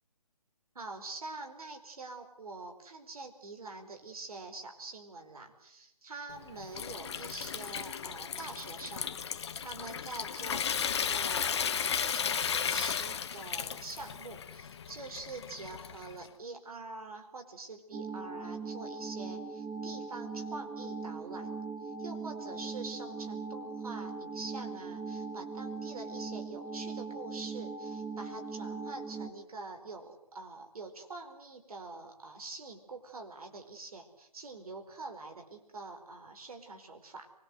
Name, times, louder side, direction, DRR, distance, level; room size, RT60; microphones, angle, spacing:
voice 1, 0.7-21.5 21.8-37.3, right 3 dB, 65° right, 5 dB, 4.8 m, -45 dB
Water tap faucet / Sink (filling or washing) / Trickle dribble, 6.3-16.2, left 7 dB, 45° left, 0.8 m, -35 dB
sound 1, 17.9-29.3, right 4 dB, 15° right, 1.1 m, -40 dB
24.0 x 21.5 x 8.0 m, 0.80 s
figure-of-eight pair, 155°, 20 cm